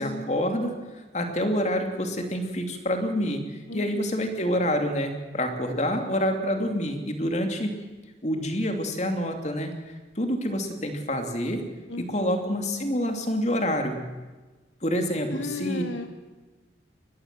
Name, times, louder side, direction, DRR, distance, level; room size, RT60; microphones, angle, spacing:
voice 1, 0.0-7.7 8.2-9.7 10.2-11.6 12.0-14.1 14.8-15.9, equal, 35° left, 5 dB, 2.8 m, -27 dB
voice 2, 3.7-4.2 11.9-12.5 15.3-16.1, left 2 dB, 70° left, 7 dB, 1.3 m, -35 dB
23.5 x 20.5 x 7.7 m, 1.3 s
head